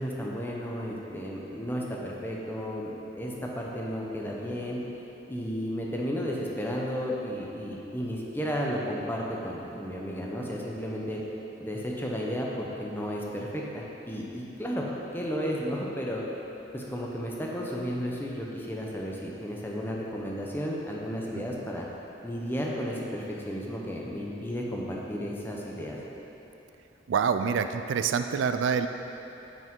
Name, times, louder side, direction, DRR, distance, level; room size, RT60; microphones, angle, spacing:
voice 1, 0.0-4.8 5.3-11.2 11.6-16.2 16.7-21.9 22.2-26.0, equal, 10° left, -3 dB, 0.7 m, -33 dB
voice 2, 27.1-28.9, right 6 dB, 90° right, 8 dB, 0.3 m, -26 dB
9.4 x 5.1 x 3.7 m, 3.0 s
head